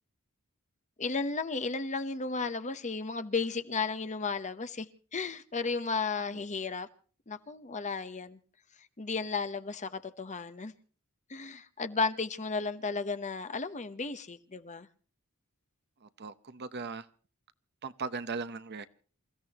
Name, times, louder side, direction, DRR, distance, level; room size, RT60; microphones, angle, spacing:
voice 1, 1.0-4.9 5.1-6.9 7.3-8.4 9.0-10.7 11.3-14.9, left 4 dB, 35° left, 0.9 m, -34 dB
voice 2, 16.0-17.1 17.8-18.9, right 4 dB, 50° right, 0.9 m, -38 dB
28.0 x 16.0 x 3.0 m
head